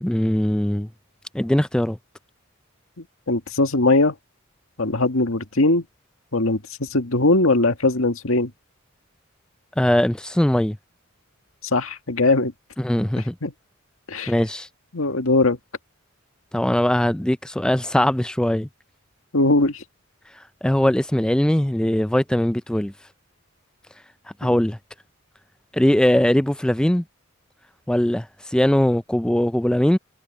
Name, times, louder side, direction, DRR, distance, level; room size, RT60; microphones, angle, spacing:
voice 1, 0.0-0.9 1.3-2.0 9.8-10.8 12.8-13.3 14.3-14.7 16.5-18.7 20.4-22.9 24.4-24.8 25.7-27.0 27.9-30.0, left 1 dB, 5° left, 0.3 m, -20 dB
voice 2, 3.0-4.2 4.8-5.8 6.3-8.5 11.7-12.5 13.4-13.5 14.1-14.3 14.9-15.6 19.3-19.8 24.4-24.5, left 2 dB, 80° left, 2.0 m, -20 dB
head